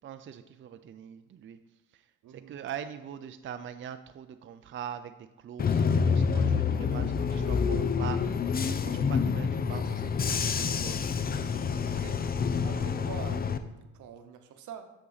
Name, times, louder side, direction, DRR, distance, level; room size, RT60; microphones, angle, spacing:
voice 1, 0.0-1.6 1.9-2.0 2.3-12.0, right 8 dB, 40° right, 9 dB, 0.4 m, -43 dB
voice 2, 2.2-2.5 11.9-12.2 12.6-13.7 13.9-14.9, right 8 dB, 80° right, 8 dB, 0.9 m, -44 dB
Bus / Engine, 5.6-13.6, left 6 dB, 30° left, 0.5 m, -27 dB
8.4 x 6.3 x 4.0 m, 0.97 s
cardioid pair, 90°, 30 cm